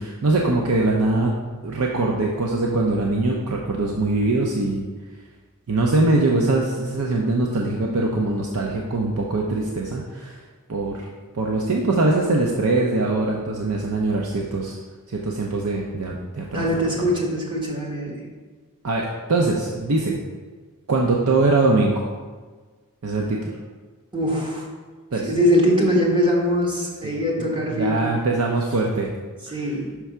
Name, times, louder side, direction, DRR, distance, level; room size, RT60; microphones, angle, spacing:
voice 1, 0.0-1.3 1.6-4.8 5.7-10.4 10.7-11.1 11.3-14.8 15.1-16.7 17.0-17.1 18.8-20.2 20.9-22.1 23.0-23.5 25.1-25.3 27.4-29.1 29.5-29.6, right 2 dB, 85° right, -1 dB, 0.6 m, -22 dB
voice 2, 16.5-18.2 24.1-24.7 25.2-28.0 29.5-29.9, equal, 20° right, -2 dB, 1.2 m, -22 dB
6.0 x 3.4 x 5.5 m, 1.4 s
head